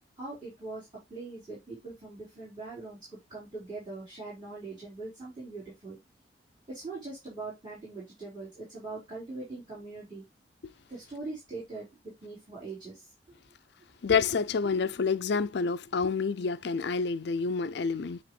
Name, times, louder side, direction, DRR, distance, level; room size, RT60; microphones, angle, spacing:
voice 1, 0.2-6.0 6.7-10.2 10.9-13.1, right 3 dB, 25° right, 4.9 m, -42 dB
voice 2, 14.0-18.2, left 5 dB, 65° left, 0.5 m, -28 dB
9.9 x 3.6 x 3.2 m
head